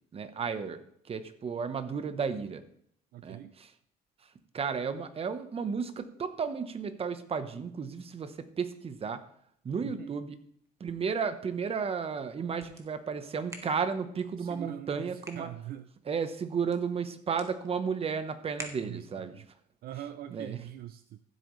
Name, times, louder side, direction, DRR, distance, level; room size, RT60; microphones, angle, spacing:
voice 1, 0.1-2.6 3.2-3.7 4.2-9.2 9.6-10.4 10.8-15.5 16.1-19.4 20.3-20.6, right 6 dB, 35° right, 11 dB, 1.1 m, -33 dB
voice 2, 3.1-3.5 9.8-10.1 14.4-15.8 18.8-19.5 19.8-21.2, right 12 dB, 65° right, 11 dB, 0.6 m, -43 dB
sound 1, 10.6-19.3, right 1 dB, 20° right, 1.7 m, -52 dB
14.5 x 8.2 x 3.3 m, 0.67 s
cardioid pair, 110°, 17 cm